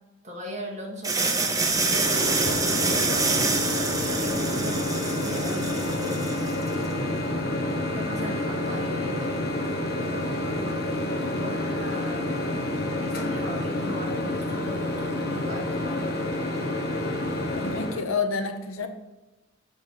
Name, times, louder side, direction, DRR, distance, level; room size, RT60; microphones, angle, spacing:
voice 1, 0.2-3.3 3.9-7.1 7.7-9.3 10.0-10.7 11.2-12.6 13.0-16.1, equal, 35° right, -2 dB, 1.7 m, -39 dB
sound 1, 1.0-6.7, right 3 dB, 15° right, 0.6 m, -26 dB
Microwave oven, 1.7-18.0, left 1 dB, 50° left, 1.2 m, -28 dB
voice 2, 17.5-18.9, left 4 dB, 75° left, 7 dB, 0.8 m, -29 dB
7.1 x 6.0 x 4.0 m, 1.1 s
head